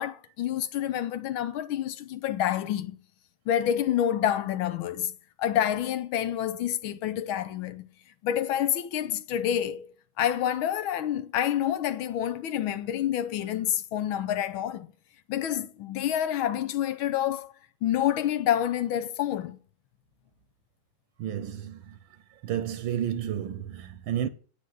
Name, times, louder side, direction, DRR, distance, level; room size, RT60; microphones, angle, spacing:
voice 1, 0.0-3.0 3.5-5.1 5.4-7.9 8.2-9.9 10.2-14.9 15.3-17.5 17.8-19.6, left 10 dB, 80° left, 1.5 m, -28 dB
voice 2, 21.2-22.0 22.4-24.3, right 10 dB, 80° right, 1.5 m, -31 dB
8.9 x 8.4 x 7.8 m
omnidirectional pair, 2.3 m